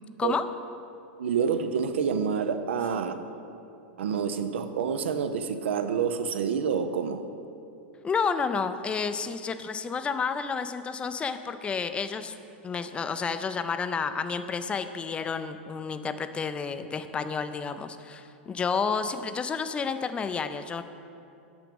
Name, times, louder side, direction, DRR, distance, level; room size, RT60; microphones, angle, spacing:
voice 1, 1.2-3.2 4.0-7.2, right 6 dB, 80° right, 9 dB, 0.5 m, -28 dB
voice 2, 8.0-12.3 12.6-20.8, left 5 dB, 15° left, 10 dB, 0.4 m, -30 dB
6.8 x 6.1 x 5.2 m, 2.7 s
hypercardioid pair, 115°, 6 cm